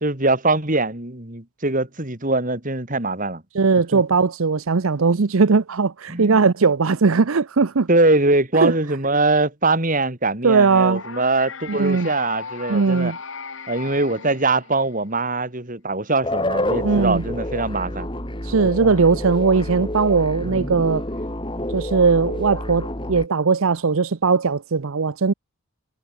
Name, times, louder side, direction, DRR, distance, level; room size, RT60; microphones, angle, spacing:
voice 1, 0.0-3.4 3.9-4.0 6.1-6.4 7.9-13.1 13.7-18.1, right 2 dB, 35° right, 3.1 m, -22 dB
voice 2, 3.5-7.9 8.6-8.7 10.4-11.0 11.7-12.1 12.7-13.2 16.8-17.2 18.4-21.0 21.7-25.3, right 4 dB, 70° right, 0.7 m, -19 dB
sound 1, 10.9-15.1, left 5 dB, 60° left, 2.2 m, -36 dB
sound 2, 16.2-23.3, left 1 dB, 20° left, 4.1 m, -28 dB
head